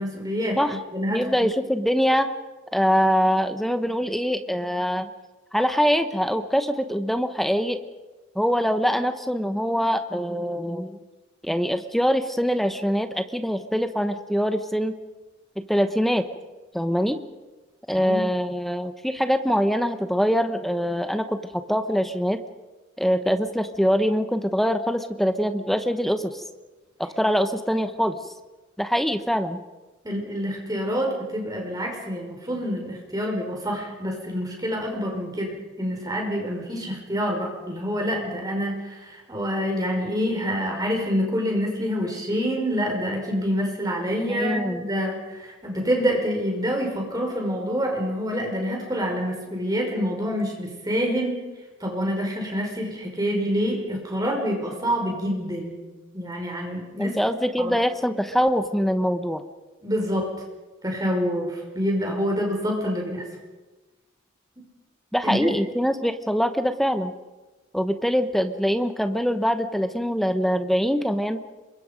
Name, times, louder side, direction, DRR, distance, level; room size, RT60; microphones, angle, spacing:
voice 1, 0.0-1.4 17.9-18.2 30.0-51.4 51.8-55.8 56.1-57.2 57.6-57.7 59.8-60.3 60.8-63.3 65.2-65.5, equal, 20° right, 1 dB, 5.2 m, -27 dB
voice 2, 1.1-2.3 2.7-5.1 5.5-7.8 8.3-11.0 11.4-15.0 15.6-16.3 16.7-17.2 17.9-21.4 21.7-22.4 23.0-26.4 27.2-28.2 28.8-29.6 44.3-44.8 57.0-59.4 65.1-67.1 67.7-71.4, equal, ahead, 8 dB, 1.0 m, -23 dB
27.0 x 23.0 x 5.3 m, 1.2 s
head